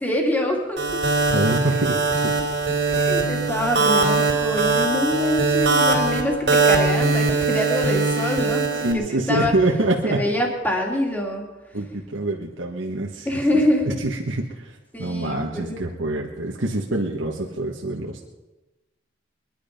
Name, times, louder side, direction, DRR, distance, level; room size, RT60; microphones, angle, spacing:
voice 1, 0.0-1.0 2.9-9.5 10.0-11.4 13.2-13.9 14.9-15.8, left 1 dB, 10° left, 1 dB, 2.6 m, -25 dB
sound 1, 0.8-8.9, right 3 dB, 65° right, 3.2 m, -21 dB
voice 2, 1.3-2.3 3.1-3.2 8.8-10.2 11.7-13.3 13.8-18.3, right 2 dB, 85° right, -1 dB, 1.5 m, -25 dB
22.5 x 11.0 x 5.2 m, 1.1 s
head